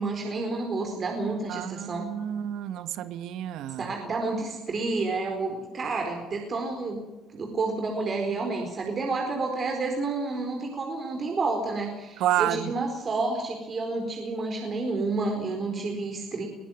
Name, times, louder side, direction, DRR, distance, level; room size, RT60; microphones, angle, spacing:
voice 1, 0.0-2.1 3.8-16.4, right 3 dB, 40° right, 4.4 m, -30 dB
voice 2, 1.5-3.9 12.2-12.7, right 12 dB, 75° right, 1.2 m, -29 dB
21.5 x 15.5 x 9.3 m
supercardioid pair, 85°, 0 cm